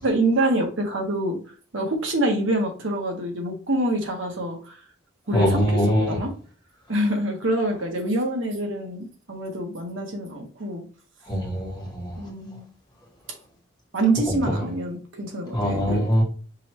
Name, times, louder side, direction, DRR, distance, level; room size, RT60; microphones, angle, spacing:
voice 1, 0.0-1.4 1.7-4.8 5.3-6.3 6.9-10.8 12.2-12.6 13.9-16.1, right 1 dB, 80° right, 1.3 m, -26 dB
voice 2, 5.3-6.2 11.3-12.1 14.5-14.6 15.5-16.2, equal, 20° left, 1.8 m, -22 dB
5.4 x 3.2 x 2.9 m
head